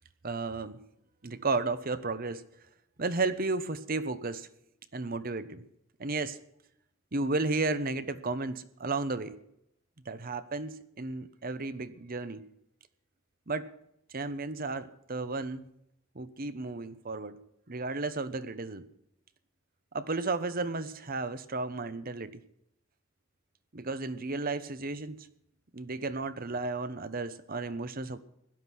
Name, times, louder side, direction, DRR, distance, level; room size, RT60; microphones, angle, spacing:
voice 1, 0.2-0.8 1.2-2.4 3.0-4.5 4.9-5.6 6.0-6.4 7.1-9.4 10.1-12.4 13.5-13.7 14.1-15.7 16.1-17.4 17.7-18.8 19.9-22.4 23.7-25.3 25.7-28.2, right 3 dB, 45° right, 1.0 m, -33 dB
17.0 x 12.0 x 6.2 m
head